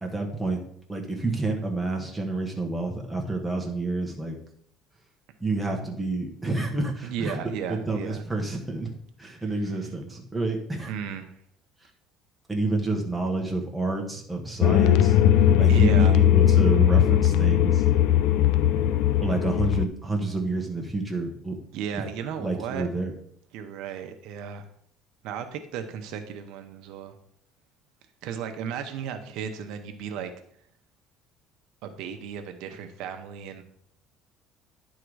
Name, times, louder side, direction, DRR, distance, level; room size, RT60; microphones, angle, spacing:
voice 1, 0.0-0.6 0.9-4.4 5.4-7.3 7.7-8.9 9.2-10.9 12.5-15.2 15.6-17.8 19.2-21.5 22.4-23.1, right 2 dB, 5° right, 0 dB, 1.1 m, -29 dB
voice 2, 7.0-8.2 9.4-9.8 10.9-11.3 15.7-16.2 21.7-22.9 23.5-24.7 25.2-27.1 28.2-30.3 31.8-33.6, right 8 dB, 75° right, 6 dB, 0.8 m, -35 dB
sound 1, 14.6-19.9, left 11 dB, 75° left, 0.4 m, -19 dB
10.0 x 3.8 x 4.7 m, 0.67 s
cardioid pair, 155°, 0 cm